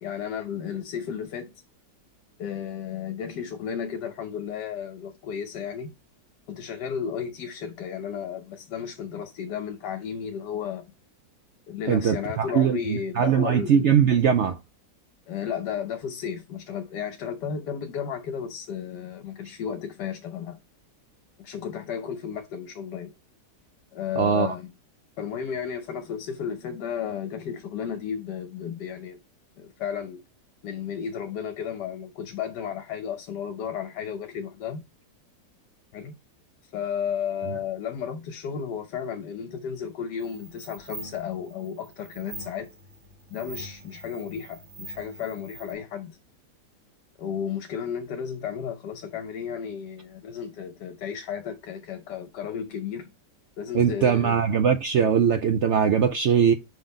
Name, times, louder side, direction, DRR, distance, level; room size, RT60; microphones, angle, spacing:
voice 1, 0.0-1.6 2.4-5.9 6.5-10.9 11.7-13.9 15.3-20.6 21.4-23.1 23.9-24.7 25.2-29.2 29.6-30.2 30.6-34.8 35.9-36.2 36.6-42.7 43.3-46.2 47.2-53.1 53.6-54.4, left 8 dB, 75° left, 1.3 m, -33 dB
voice 2, 11.9-14.6 24.2-24.5 53.7-56.5, right 7 dB, 85° right, 0.6 m, -21 dB
sound 1, 40.2-45.7, right 2 dB, 60° right, 3.1 m, -44 dB
5.6 x 3.9 x 5.1 m
omnidirectional pair, 1.9 m